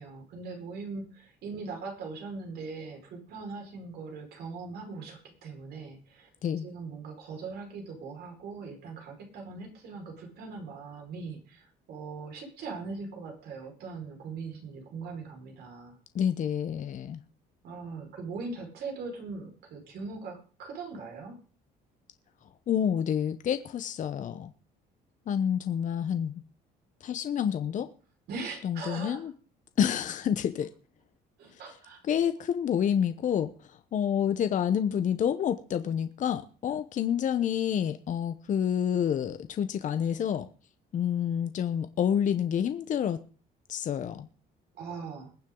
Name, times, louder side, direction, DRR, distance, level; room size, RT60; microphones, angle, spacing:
voice 1, 0.0-6.3 6.6-16.0 17.6-21.3 28.3-29.2 31.4-32.0 44.7-45.3, right 4 dB, 70° right, 1 dB, 5.0 m, -40 dB
voice 2, 16.1-17.2 22.7-24.5 25.3-26.4 27.0-27.9 28.6-29.3 29.8-30.7 32.0-40.5 40.9-43.2 43.7-44.3, left 8 dB, 50° left, 10 dB, 0.9 m, -28 dB
21.5 x 7.3 x 3.9 m, 0.38 s
cardioid pair, 110°, 17 cm